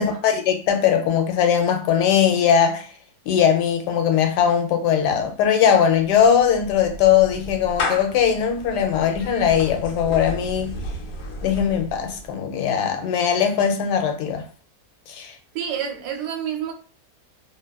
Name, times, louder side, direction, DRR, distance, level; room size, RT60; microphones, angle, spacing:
voice 1, 0.0-2.9 3.3-10.7 11.4-14.4 15.1-15.3, left 8 dB, 80° left, 1.1 m, -20 dB
Clapping / Meow, 6.1-12.3, left 1 dB, 65° left, 0.9 m, -33 dB
voice 2, 15.5-16.7, right 8 dB, 80° right, 1.2 m, -28 dB
2.8 x 2.3 x 2.2 m
omnidirectional pair, 1.8 m